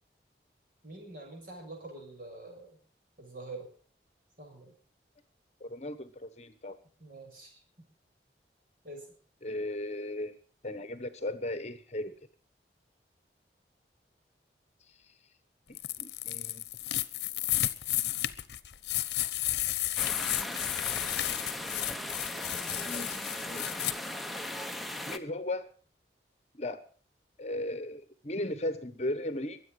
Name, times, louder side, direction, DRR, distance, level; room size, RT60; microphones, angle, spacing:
voice 1, 0.8-2.8 3.2-3.7 4.4-4.7 7.0-7.6 8.8-9.1, right 2 dB, 50° right, 3 dB, 6.6 m, -45 dB
voice 2, 5.6-6.8 9.4-10.4 10.6-12.1 15.1-15.2 15.7-16.6 19.6-19.9 22.9-23.1 23.5-23.9 25.1-25.7 26.5-26.8 27.4-29.6, left 1 dB, 35° left, 11 dB, 1.2 m, -36 dB
sound 1, 15.7-23.9, left 14 dB, 70° left, 0.9 m, -33 dB
sound 2, 20.0-25.2, left 1 dB, ahead, 0.9 m, -38 dB
23.0 x 8.4 x 6.6 m, 0.43 s
head